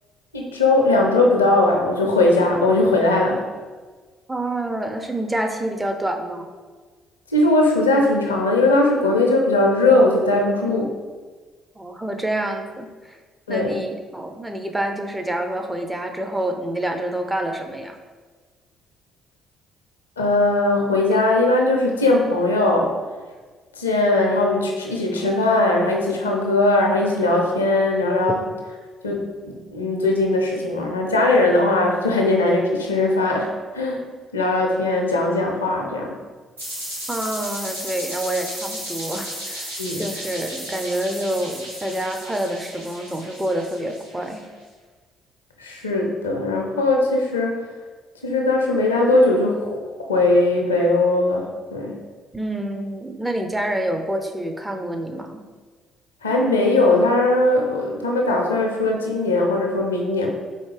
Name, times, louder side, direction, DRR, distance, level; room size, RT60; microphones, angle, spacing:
voice 1, 0.3-3.4 7.3-10.9 13.5-13.8 20.2-22.9 23.8-28.4 29.0-34.0 34.3-36.1 39.8-40.0 45.6-47.6 48.2-49.8 50.1-51.4 51.7-51.9 56.2-60.3, left 2 dB, 85° left, 1 dB, 0.4 m, -19 dB
voice 2, 4.3-6.5 11.8-13.2 13.5-18.0 37.1-44.4 52.3-55.4, right 1 dB, 10° right, 4 dB, 0.5 m, -27 dB
sound 1, 36.6-44.4, equal, 90° right, 0.8 m, -34 dB
4.2 x 3.2 x 3.3 m, 1.4 s
figure-of-eight pair, 45°, 0 cm